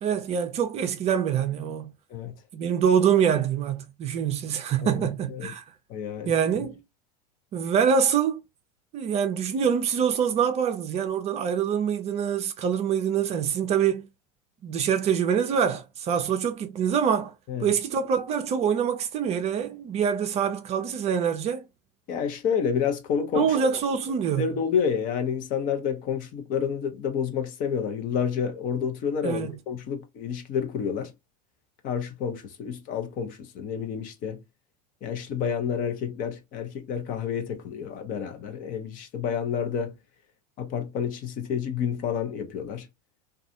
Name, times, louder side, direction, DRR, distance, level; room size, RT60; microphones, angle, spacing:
voice 1, 0.0-1.9 2.5-5.6 6.3-6.8 7.5-8.4 8.9-14.0 14.6-17.3 17.6-21.7 23.3-24.5 29.2-29.5, right 7 dB, 30° right, 0.5 m, -25 dB
voice 2, 4.8-5.5 5.9-6.3 17.5-17.7 22.1-23.6 24.4-31.1 31.8-34.4 35.0-39.9 40.6-42.9, left 7 dB, 40° left, 0.7 m, -29 dB
2.4 x 2.3 x 2.6 m
figure-of-eight pair, 85°, 21 cm